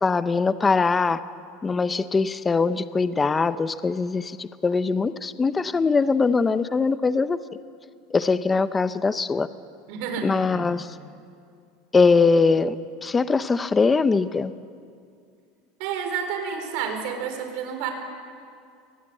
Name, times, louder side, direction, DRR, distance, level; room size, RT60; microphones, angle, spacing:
voice 1, 0.0-1.2 1.6-7.4 8.1-9.5 10.2-10.9 11.9-12.8 13.0-14.5, left 4 dB, 15° left, 13 dB, 0.5 m, -22 dB
voice 2, 9.9-10.7 15.8-17.9, right 7 dB, 60° right, 5 dB, 4.3 m, -30 dB
24.0 x 20.5 x 8.7 m, 2.3 s
supercardioid pair, 165°, 0 cm